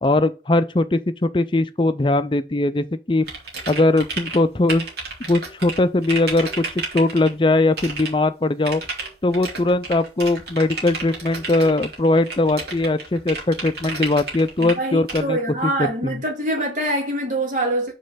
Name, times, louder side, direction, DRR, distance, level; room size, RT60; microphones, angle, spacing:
voice 1, 0.0-3.3 3.7-4.9 5.3-8.8 9.2-16.2, left 2 dB, 25° left, 0.5 m, -20 dB
Mechanical keyboard typing, 3.3-4.4 4.7-7.3 7.8-8.1 8.7-14.7 15.1-15.2, right 3 dB, 65° right, 2.3 m, -31 dB
voice 2, 14.6-17.9, right 1 dB, 45° right, 2.3 m, -24 dB
5.4 x 4.4 x 5.7 m
head